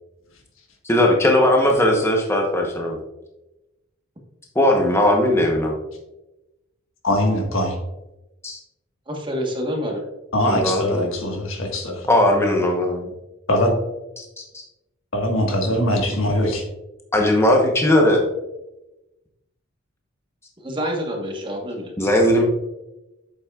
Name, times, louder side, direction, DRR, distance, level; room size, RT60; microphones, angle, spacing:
voice 1, 0.8-3.0 4.5-5.7 8.4-8.6 10.5-11.1 12.1-13.1 14.2-14.6 17.1-18.2 22.0-22.4, left 1 dB, 10° left, 1 dB, 0.9 m, -18 dB
voice 2, 7.0-7.8 10.3-12.1 13.5-13.8 15.1-16.6, left 1 dB, 75° left, 2 dB, 1.5 m, -22 dB
voice 3, 9.1-10.0 20.6-21.9, equal, 25° right, 1 dB, 1.3 m, -27 dB
8.6 x 7.3 x 2.4 m, 0.96 s
head